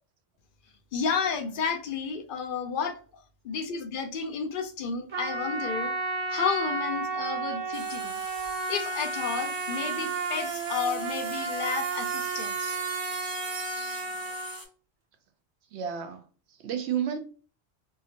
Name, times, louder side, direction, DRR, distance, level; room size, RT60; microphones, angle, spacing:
voice 1, 0.9-5.9 6.3-8.2 8.7-12.8, left 6 dB, 60° left, 0.6 m, -32 dB
Trumpet, 5.1-14.6, right 4 dB, 50° right, 0.8 m, -32 dB
sound 1, 7.7-14.6, right 2 dB, 25° right, 0.5 m, -41 dB
voice 2, 15.7-17.2, right 8 dB, 85° right, 0.9 m, -32 dB
2.8 x 2.5 x 2.8 m
omnidirectional pair, 1.1 m